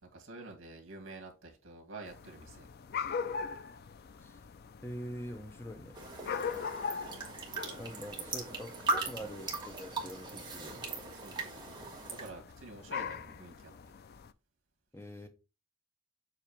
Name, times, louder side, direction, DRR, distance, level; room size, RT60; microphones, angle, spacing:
voice 1, 0.0-2.7 6.4-6.6 11.1-13.7, right 3 dB, 65° right, 2.2 m, -49 dB
sound 1, 2.1-14.3, left 6 dB, 50° left, 0.4 m, -42 dB
voice 2, 4.8-6.0 7.8-10.9 14.9-15.3, equal, 10° left, 0.8 m, -44 dB
sound 2, 5.9-12.3, right 3 dB, 20° right, 1.6 m, -39 dB
7.5 x 2.9 x 5.0 m
head